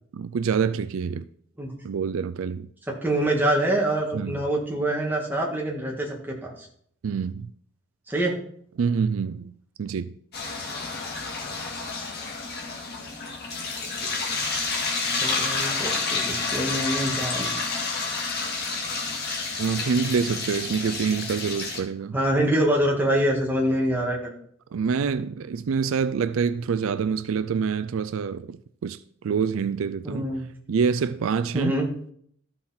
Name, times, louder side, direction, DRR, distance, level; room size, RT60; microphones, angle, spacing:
voice 1, 0.1-1.3 1.8-2.7 4.1-4.4 7.0-7.5 8.8-10.1 19.6-22.2 24.7-30.3 30.7-31.8, right 6 dB, 70° right, 0.4 m, -26 dB
voice 2, 3.0-6.7 8.1-8.3 15.2-17.5 22.1-24.3 30.0-30.5 31.5-31.9, right 1 dB, 10° right, 2.0 m, -25 dB
sound 1, 10.3-21.8, left 4 dB, 50° left, 1.9 m, -29 dB
13.0 x 5.9 x 4.3 m
head